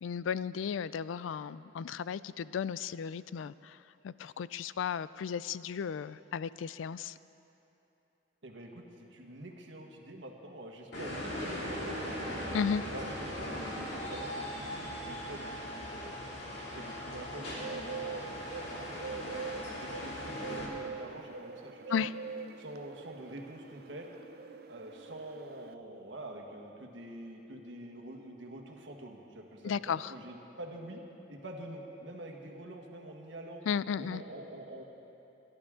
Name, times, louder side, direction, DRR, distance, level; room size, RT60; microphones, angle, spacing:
voice 1, 0.0-7.2 12.5-12.8 21.9-22.1 29.6-30.1 33.7-34.2, left 7 dB, 90° left, 17 dB, 0.3 m, -34 dB
voice 2, 8.4-12.5 12.9-16.2 16.5-18.3 18.7-22.1 22.6-24.1 24.7-31.0 31.3-33.6 34.0-34.8, right 1 dB, 75° right, 1 dB, 1.6 m, -46 dB
sound 1, 10.9-20.7, equal, 60° left, 2.7 m, -39 dB
Bird, 17.4-25.7, right 5 dB, 55° right, 0.4 m, -44 dB
24.5 x 11.5 x 3.8 m, 2.9 s
head